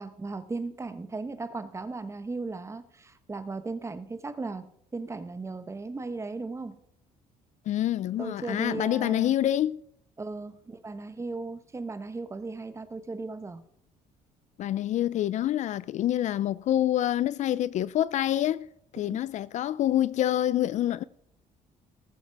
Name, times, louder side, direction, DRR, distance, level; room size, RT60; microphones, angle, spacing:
voice 1, 0.0-6.7 8.2-9.3 10.2-13.6 19.0-19.2, right 3 dB, 20° right, 1.0 m, -36 dB
voice 2, 7.7-9.8 14.6-18.7 18.9-21.0, left 12 dB, 55° left, 0.4 m, -26 dB
19.0 x 7.2 x 4.6 m
cardioid pair, 115°, 15 cm